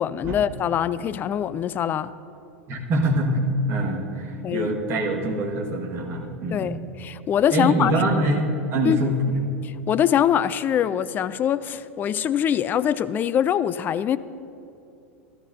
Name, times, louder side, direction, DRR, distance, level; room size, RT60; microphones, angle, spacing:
voice 1, 0.0-2.1 4.4-4.7 6.5-7.9 8.8-9.1 9.6-14.2, left 9 dB, 25° left, 15 dB, 0.3 m, -23 dB
voice 2, 2.7-6.7 7.5-9.5, right 1 dB, 35° right, 1 dB, 1.6 m, -24 dB
13.5 x 13.5 x 2.7 m, 2.8 s
figure-of-eight pair, 85°, 7 cm